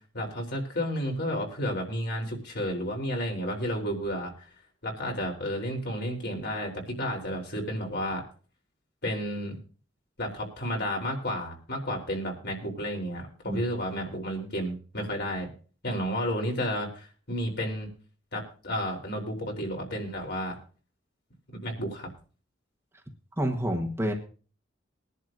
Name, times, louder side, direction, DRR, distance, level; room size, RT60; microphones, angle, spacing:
voice 1, 0.1-4.5 4.8-8.2 9.0-9.6 10.2-15.5 15.8-17.9 18.3-20.6 21.6-22.1, equal, 60° left, 1 dB, 3.5 m, -32 dB
voice 2, 23.4-24.1, equal, 15° right, 2 dB, 1.2 m, -28 dB
22.0 x 10.5 x 2.6 m, 0.38 s
head